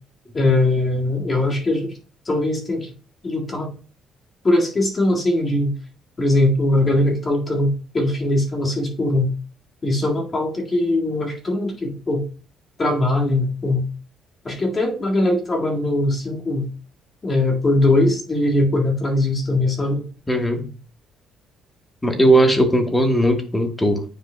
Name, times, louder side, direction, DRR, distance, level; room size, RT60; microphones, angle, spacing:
voice 1, 0.3-1.9 2.3-2.9 3.2-3.7 4.4-5.8 6.2-9.3 9.8-12.2 12.8-13.8 14.4-16.7 17.2-20.0, left 1 dB, 30° left, -1 dB, 1.9 m, -20 dB
voice 2, 20.3-20.7 22.0-24.0, right 1 dB, 10° left, 4 dB, 1.3 m, -18 dB
9.1 x 5.0 x 2.2 m, 0.37 s
cardioid pair, 120°, 0 cm